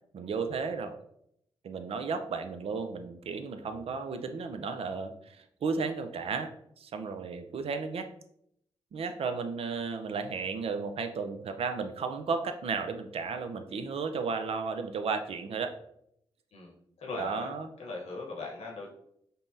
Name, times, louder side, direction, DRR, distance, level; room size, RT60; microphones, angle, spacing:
voice 1, 0.1-0.9 1.6-6.5 6.8-8.1 8.9-15.8 17.2-17.7, right 5 dB, 60° right, 7 dB, 0.4 m, -34 dB
voice 2, 17.0-18.9, left 3 dB, 70° left, -1 dB, 1.0 m, -39 dB
5.2 x 2.1 x 2.6 m, 0.72 s
supercardioid pair, 40°, 11 cm